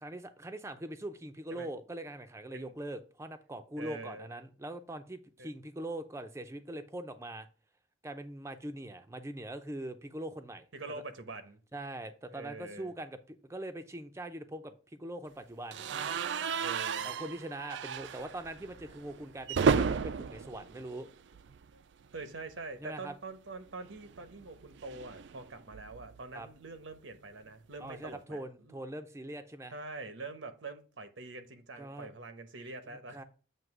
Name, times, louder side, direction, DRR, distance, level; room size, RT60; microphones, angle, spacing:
voice 1, 0.0-7.5 8.0-10.7 11.7-15.8 17.0-21.1 22.8-23.1 26.3-26.5 27.8-29.7 31.8-32.1 32.9-33.2, right 1 dB, 15° right, 0.5 m, -42 dB
voice 2, 3.8-4.3 5.4-5.5 10.7-11.6 12.3-12.9 16.6-17.1 21.7-21.8 22.1-28.8 29.7-33.2, right 3 dB, 90° right, 1.1 m, -45 dB
sound 1, 15.7-21.7 22.0-22.2 22.5-22.6 23.9-26.2, right 6 dB, 70° right, 0.4 m, -34 dB
7.7 x 2.9 x 5.9 m
head